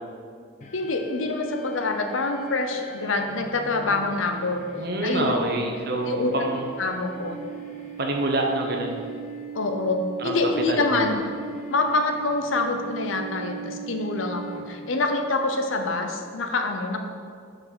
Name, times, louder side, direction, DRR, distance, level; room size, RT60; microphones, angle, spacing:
sound 1, 0.6-15.1, right 5 dB, 40° left, 0.8 m, -40 dB
voice 1, 0.7-4.6 5.0-5.4 5.6-5.7 6.1-6.3 6.8-7.4 9.5-11.2 11.7-17.0, left 3 dB, 85° left, 5 dB, 0.8 m, -26 dB
voice 2, 4.8-6.7 8.0-9.0 10.2-10.4 10.7-11.0, right 2 dB, 50° right, 1 dB, 1.0 m, -26 dB
6.1 x 5.2 x 6.2 m, 2.2 s
head